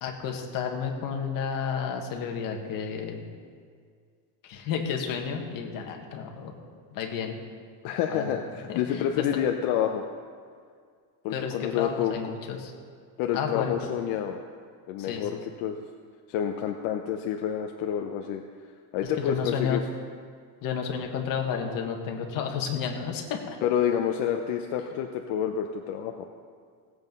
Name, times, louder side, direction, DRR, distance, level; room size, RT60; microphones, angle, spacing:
voice 1, 0.0-3.2 4.4-6.5 6.9-7.4 8.1-8.3 8.7-9.4 11.3-12.7 13.3-13.8 15.0-15.4 19.0-19.8 20.6-23.6, left 7 dB, 50° left, 2 dB, 1.8 m, -31 dB
voice 2, 7.8-10.0 11.2-12.1 13.2-14.4 14.9-15.8 16.3-18.4 18.9-19.8 23.6-26.3, left 9 dB, 75° left, 4 dB, 0.9 m, -28 dB
17.0 x 8.0 x 5.4 m, 2.1 s
cardioid pair, 160°, 41 cm